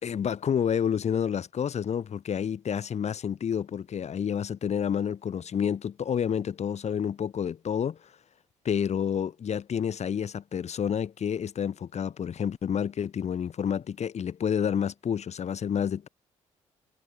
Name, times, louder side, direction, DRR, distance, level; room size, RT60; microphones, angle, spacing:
voice 1, 0.0-8.0 8.6-16.1, left 8 dB, 45° left, 1.2 m, -29 dB
hypercardioid pair, 45°, 15 cm